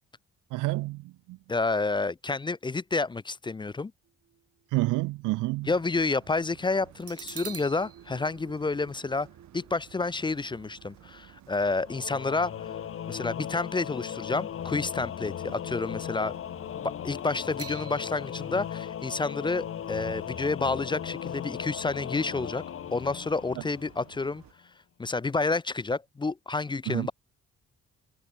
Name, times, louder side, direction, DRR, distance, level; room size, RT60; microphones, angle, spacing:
voice 1, 0.5-1.4 4.7-5.7 15.4-15.5 26.9-27.1, right 20 dB, 90° right, 0.5 m, -29 dB
voice 2, 1.5-3.9 5.7-9.3 9.5-12.5 13.1-16.3 16.8-22.6 22.9-24.4 25.0-27.1, left 3 dB, 15° left, 0.4 m, -29 dB
sound 1, 4.0-5.6 6.0-6.1 7.0-14.4 14.8-15.0 17.6-21.4 21.7-21.8, right 9 dB, 50° right, 1.9 m, -50 dB
sound 2, 5.6-24.5, right 12 dB, 65° right, 1.4 m, -55 dB
Singing / Musical instrument, 11.8-24.3, left 10 dB, 45° left, 0.8 m, -37 dB
cardioid pair, 90°, 30 cm